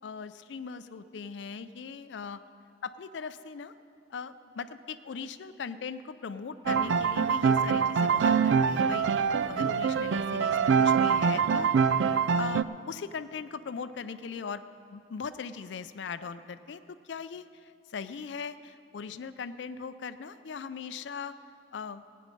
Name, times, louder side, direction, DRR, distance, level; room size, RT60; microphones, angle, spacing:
voice 1, 0.0-2.4 2.8-3.7 4.1-11.7 12.1-21.3 21.7-22.0, left 5 dB, 75° left, 12 dB, 0.4 m, -39 dB
sound 1, 6.7-12.6, right 6 dB, 75° right, 0.3 m, -24 dB
16.5 x 9.4 x 5.3 m, 2.5 s
head